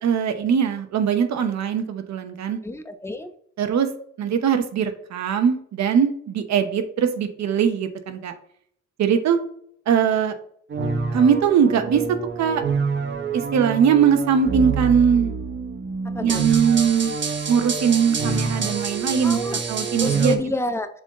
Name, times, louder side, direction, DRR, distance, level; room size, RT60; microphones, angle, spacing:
voice 1, 0.0-2.6 3.6-3.9 4.2-8.3 9.0-9.4 9.9-10.3 11.1-12.0 12.4-12.6 13.3-15.3 16.2-17.1 17.5-20.4, right 7 dB, 65° right, 7 dB, 1.1 m, -21 dB
voice 2, 2.6-3.3 16.1-16.5 19.2-19.7 20.0-20.9, left 1 dB, 10° left, 7 dB, 0.8 m, -28 dB
sound 1, 10.7-20.4, right 5 dB, 40° right, 1.2 m, -27 dB
7.2 x 4.0 x 3.7 m, 0.63 s
cardioid pair, 90°, 30 cm